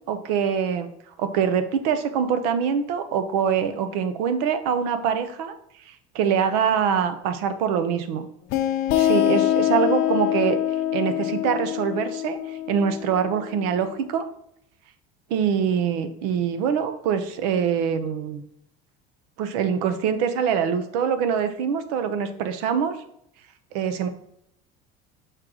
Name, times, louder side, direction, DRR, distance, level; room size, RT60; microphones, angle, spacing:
voice 1, 0.1-0.9 1.2-5.5 5.9-8.3 8.9-10.6 10.9-14.2 15.3-18.4 19.4-23.0 23.7-24.1, right 7 dB, 75° right, 10 dB, 0.8 m, -24 dB
sound 1, 8.5-13.9, left 12 dB, 50° left, 0.6 m, -24 dB
6.5 x 4.6 x 3.7 m, 0.74 s
cardioid pair, 175°, 20 cm